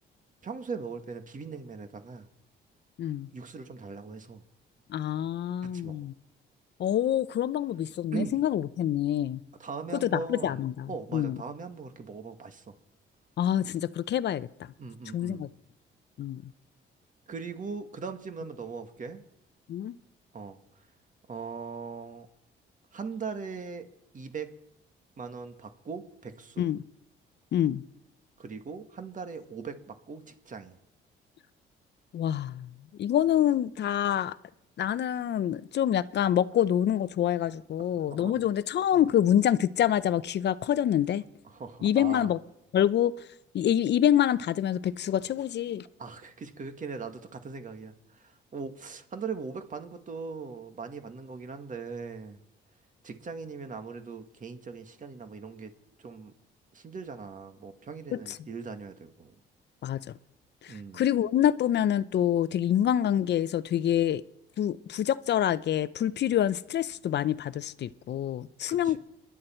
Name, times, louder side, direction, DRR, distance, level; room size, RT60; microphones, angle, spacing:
voice 1, 0.4-2.3 3.3-4.4 5.6-6.0 8.1-8.4 9.6-10.6 10.9-12.7 14.8-15.4 17.3-19.2 20.3-20.8 21.3-22.3 22.9-23.9 24.1-24.5 25.2-26.6 28.4-30.8 38.1-38.4 38.9-39.0 41.4-42.3 46.0-52.4 53.0-55.7 56.0-56.3 56.7-59.3 60.7-61.0 68.7-69.0, right 5 dB, 40° right, 1.8 m, -40 dB
voice 2, 3.0-3.3 4.9-6.1 6.8-9.4 10.0-11.4 13.4-14.5 15.1-15.5 16.2-16.5 19.7-20.0 26.6-26.8 27.5-27.8 32.1-34.4 34.8-41.2 41.8-42.4 42.7-43.1 43.5-45.9 58.1-58.4 59.8-60.0 60.6-64.2 64.6-69.0, left 10 dB, 60° left, 0.6 m, -26 dB
28.5 x 11.5 x 4.4 m
cardioid pair, 90°, 20 cm